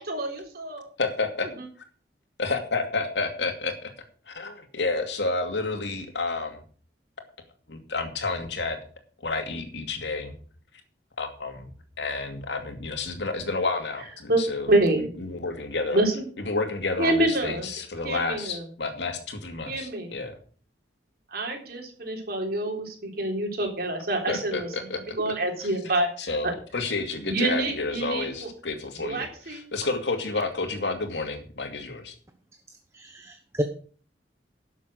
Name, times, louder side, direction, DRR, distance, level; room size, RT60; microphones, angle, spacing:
voice 1, 0.0-0.9 14.3-14.4 14.7-15.0 15.9-16.2 17.0-17.7 18.0-18.6 19.7-20.1 21.3-24.7 25.2-26.1 26.4-26.5 27.3-28.5 29.0-29.6, right 1 dB, 60° right, 1 dB, 3.8 m, -26 dB
voice 2, 1.0-1.5 2.4-3.9 4.3-6.6 7.7-8.8 9.2-10.4 11.2-11.7 12.0-16.0 16.4-20.4 24.3-25.0 25.6-25.8 26.2-32.2, left 3 dB, 80° left, 5 dB, 2.5 m, -30 dB
voice 3, 32.9-33.6, right 1 dB, 15° right, 6 dB, 1.0 m, -31 dB
12.0 x 7.4 x 6.4 m, 0.43 s
head